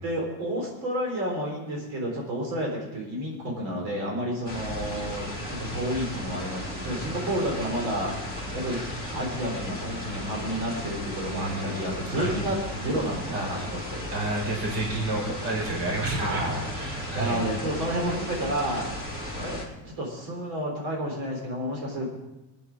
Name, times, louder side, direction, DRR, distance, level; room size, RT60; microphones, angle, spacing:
voice 1, 0.0-8.1 8.5-8.8 9.1-14.1 16.1-16.7 17.1-18.8 19.3-22.1, equal, 80° right, -1 dB, 4.4 m, -30 dB
sound 1, 4.5-19.7, left 1 dB, 20° right, 3.0 m, -35 dB
voice 2, 11.3-12.4 13.3-13.7 14.1-17.5, right 2 dB, 55° right, -1 dB, 4.6 m, -30 dB
20.5 x 10.0 x 4.8 m, 1.0 s
cardioid pair, 170°, 45 cm